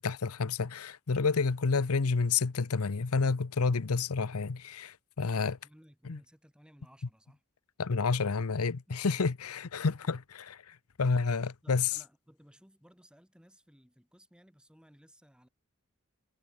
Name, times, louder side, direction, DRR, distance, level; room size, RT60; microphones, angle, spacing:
voice 1, 0.0-5.6 6.1-6.2 7.8-10.2 10.5-11.9, left 4 dB, 85° left, 0.8 m, -29 dB
voice 2, 5.2-7.4 8.9-9.2 11.6-15.5, equal, 5° right, 7.4 m, -60 dB
head